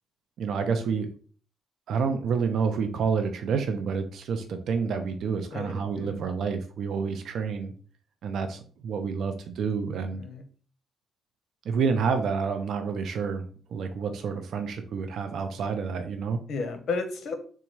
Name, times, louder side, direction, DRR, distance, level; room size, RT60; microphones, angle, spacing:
voice 1, 0.4-1.1 1.9-7.7 8.2-10.2 11.7-16.4, right 5 dB, 70° right, 6 dB, 0.5 m, -29 dB
voice 2, 5.5-6.2 10.1-10.4 16.5-17.4, left 4 dB, 60° left, 7 dB, 0.8 m, -33 dB
4.0 x 2.3 x 4.6 m, 0.43 s
cardioid pair, 90°, 0 cm